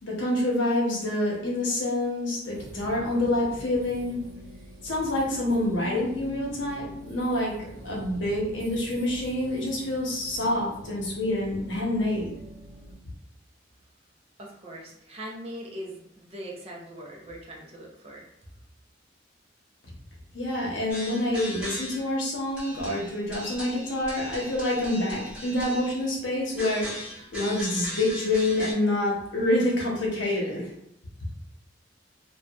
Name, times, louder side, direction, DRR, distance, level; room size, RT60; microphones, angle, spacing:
voice 1, 0.0-4.2 4.8-7.6 7.8-12.3 20.3-26.9 27.3-30.7, left 1 dB, 80° left, -3 dB, 0.8 m, -27 dB
sound 1, 2.5-12.9, equal, 85° right, 0.7 m, -45 dB
sound 2, 5.8-8.8, left 2 dB, 45° left, 0.5 m, -44 dB
voice 2, 14.4-18.3, equal, 35° right, -2 dB, 0.6 m, -41 dB
sound 3, 20.9-22.1 22.6-26.1 26.6-28.7, equal, 5° right, 1.2 m, -38 dB
2.6 x 2.2 x 2.3 m, 0.80 s
head